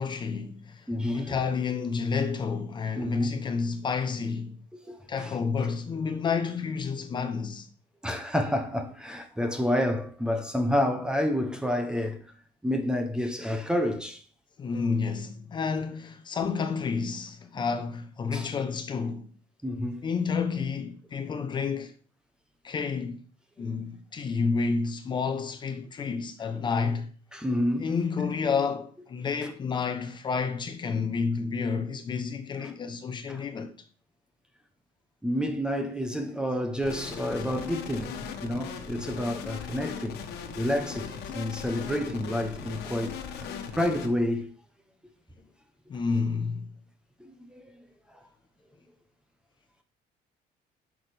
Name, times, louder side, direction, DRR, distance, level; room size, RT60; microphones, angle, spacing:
voice 1, 0.0-4.6 5.1-7.7 14.6-19.3 20.0-21.9 22.6-23.2 23.6-27.1 27.8-33.7 37.4-37.5 42.8-42.9 45.9-46.7, left 5 dB, 30° left, 0.8 m, -30 dB
voice 2, 0.9-1.4 3.0-3.3 4.7-5.3 8.0-12.2 12.6-14.2 18.3-18.5 19.6-20.0 23.6-23.7 26.5-26.6 27.3-27.9 32.6-32.7 33.3-33.4 35.2-40.2 40.6-44.5 47.2-47.8, left 1 dB, 5° right, 0.8 m, -29 dB
sound 1, 36.8-44.1, left 6 dB, 90° left, 1.4 m, -38 dB
10.0 x 6.2 x 3.4 m
cardioid pair, 170°, 16 cm